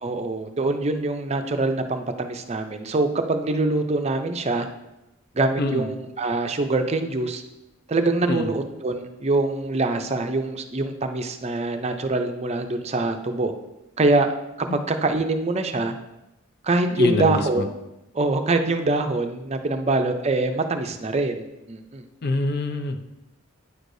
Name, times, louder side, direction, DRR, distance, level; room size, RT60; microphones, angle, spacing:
voice 1, 0.0-4.7 5.3-7.4 7.9-13.5 14.0-14.3 14.6-15.9 16.6-17.8 18.1-22.0, right 2 dB, 30° right, 6 dB, 0.5 m, -24 dB
voice 2, 16.9-17.6 22.2-23.0, left 3 dB, 45° left, 7 dB, 0.6 m, -25 dB
9.6 x 6.4 x 2.6 m, 0.96 s
head